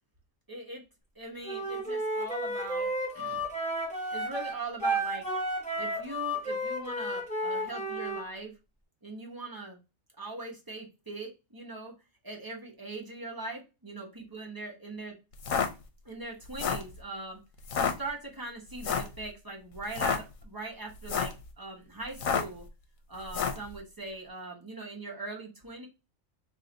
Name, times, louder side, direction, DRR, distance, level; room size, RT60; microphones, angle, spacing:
voice 1, 0.5-0.8 1.1-3.4 4.1-5.2 5.8-8.5 9.0-9.8 10.2-11.9 12.2-15.2 16.0-17.4 17.8-22.6 23.1-25.9, right 3 dB, 20° right, -1 dB, 0.7 m, -41 dB
Wind instrument woodwind instrument, 1.4-8.2, right 1 dB, 5° left, 1.8 m, -32 dB
sound 1, 15.3-15.7 16.4-16.9 17.6-17.9 18.8-19.1 19.8-20.2 20.9-21.4 22.1-22.6 23.3-23.6, left 6 dB, 75° left, 1.0 m, -29 dB
3.1 x 2.6 x 3.8 m, 0.27 s
omnidirectional pair, 1.4 m